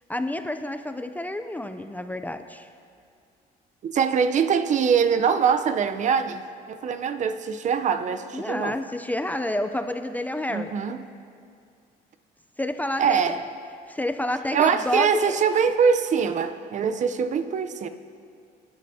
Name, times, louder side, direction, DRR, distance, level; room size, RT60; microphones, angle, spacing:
voice 1, 0.1-2.7 8.3-10.7 12.6-13.5 13.9-15.4, left 1 dB, 10° left, 8 dB, 0.4 m, -29 dB
voice 2, 3.8-8.7 10.5-11.0 13.0-13.4 14.5-17.9, right 6 dB, 45° right, 10 dB, 0.7 m, -23 dB
22.0 x 11.0 x 2.8 m, 2.3 s
cardioid pair, 110°, 17 cm